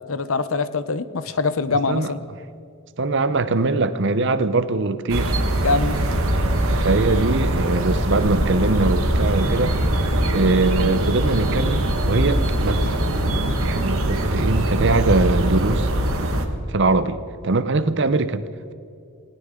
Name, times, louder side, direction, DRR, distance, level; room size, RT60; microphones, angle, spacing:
voice 1, 0.0-2.2 5.6-6.0, left 3 dB, 70° left, 14 dB, 0.7 m, -23 dB
voice 2, 3.0-5.3 6.4-9.7 10.3-13.0 13.6-15.9 16.7-18.7, right 3 dB, 55° right, 12 dB, 0.7 m, -22 dB
sound 1, 5.1-16.5, right 1 dB, 75° right, 1.6 m, -22 dB
19.5 x 18.0 x 3.8 m, 2.5 s
head